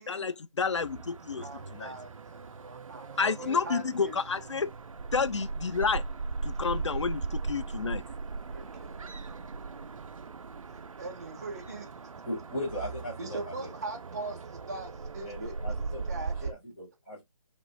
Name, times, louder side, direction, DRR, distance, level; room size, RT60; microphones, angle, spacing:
voice 1, 0.0-1.4 1.7-1.9 3.2-4.7 5.1-6.0 6.4-8.0, left 5 dB, 55° left, 0.4 m, -30 dB
sound 1, 0.6-16.5, right 4 dB, 70° right, 0.5 m, -38 dB
voice 2, 1.4-4.2 8.5-9.0 11.0-11.9 13.2-15.8 16.1-16.5, right 2 dB, 30° right, 0.8 m, -41 dB
voice 3, 12.2-13.7 15.2-17.2, left 1 dB, 5° left, 0.7 m, -38 dB
5.0 x 2.3 x 3.2 m
figure-of-eight pair, 175°, 18 cm